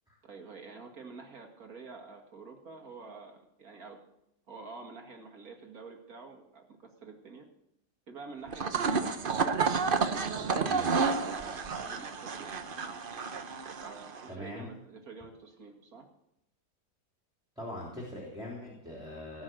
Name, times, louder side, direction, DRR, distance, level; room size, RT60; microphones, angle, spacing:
voice 1, 0.2-4.0 4.5-7.5 8.1-9.2 10.3-12.5 13.8-16.1, right 4 dB, 65° right, 3 dB, 2.5 m, -48 dB
sound 1, 8.5-14.3, right 5 dB, 40° right, 0.9 m, -30 dB
voice 2, 14.3-14.7 17.6-19.4, left 1 dB, 5° right, -3 dB, 3.3 m, -42 dB
18.5 x 6.3 x 8.0 m, 0.82 s
omnidirectional pair, 1.7 m